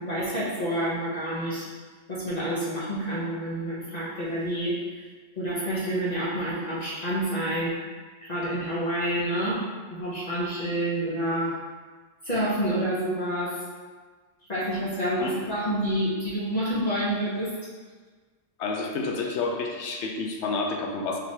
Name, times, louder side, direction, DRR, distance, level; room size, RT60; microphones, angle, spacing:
voice 1, 0.0-1.7 2.1-5.0 5.4-7.7 8.2-9.6 9.9-11.5 12.2-13.6 14.5-17.5, right 1 dB, 40° left, -9 dB, 0.9 m, -28 dB
voice 2, 18.6-21.2, left 3 dB, 75° left, 2 dB, 0.9 m, -29 dB
5.1 x 3.0 x 2.8 m, 1.4 s
omnidirectional pair, 1.2 m